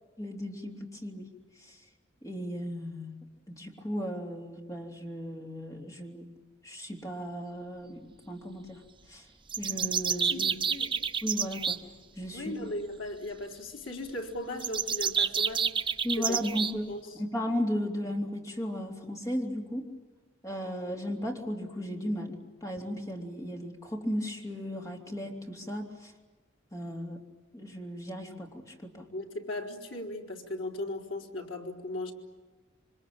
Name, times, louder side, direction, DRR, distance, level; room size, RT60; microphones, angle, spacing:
voice 1, 0.2-1.3 1.6-1.8 2.2-3.1 3.5-6.3 6.6-8.8 9.1-9.3 9.6-10.6 11.2-11.8 12.2-12.5 16.0-19.9 20.4-22.4 22.6-26.1 26.7-27.2 27.5-29.1, equal, 15° left, 1 dB, 3.5 m, -35 dB
sound 1, 9.5-11.8 14.6-16.7, right 6 dB, 25° right, 0.9 m, -29 dB
voice 2, 10.2-10.9 12.3-16.4 16.9-17.0 29.1-32.1, left 1 dB, 75° left, 2 dB, 4.1 m, -37 dB
27.0 x 25.0 x 8.8 m, 1.3 s
head